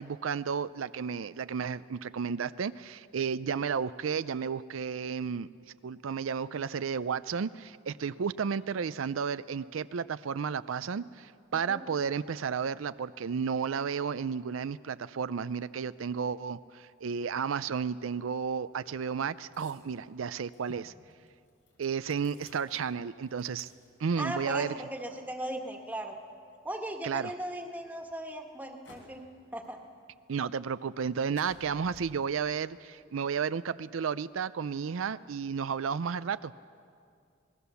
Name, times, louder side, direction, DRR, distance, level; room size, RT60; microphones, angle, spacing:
voice 1, 0.0-5.5 5.8-20.9 21.8-23.7 24.0-24.7 27.0-27.3 30.3-36.5, right 6 dB, 85° right, 14 dB, 0.5 m, -32 dB
voice 2, 11.5-11.8 24.2-26.2 26.6-29.2 29.5-29.8, right 1 dB, 10° right, 3 dB, 1.6 m, -37 dB
sound 1, 18.0-27.2 27.7-29.4 29.6-30.4 30.7-32.0, left 2 dB, 70° left, 4.5 m, -60 dB
27.0 x 19.5 x 7.0 m, 2.3 s
head